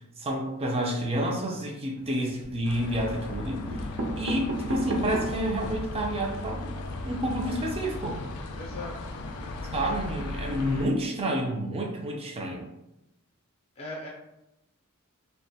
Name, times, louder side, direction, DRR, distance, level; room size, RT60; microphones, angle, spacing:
voice 1, 0.2-3.9 4.2-8.2 9.7-12.6, right 1 dB, 25° right, 0 dB, 0.4 m, -29 dB
sound 1, 2.0-2.6 3.3-3.4 3.7-5.5 6.0-6.1 6.3-6.4 6.7-6.9, right 2 dB, 80° right, 0.5 m, -33 dB
sound 2, 2.6-10.9, left 2 dB, 85° left, 0.3 m, -36 dB
voice 2, 8.6-8.9 9.4-9.8 13.8-14.1, left 2 dB, 30° left, -3 dB, 0.5 m, -39 dB
2.5 x 2.2 x 2.7 m, 0.89 s
head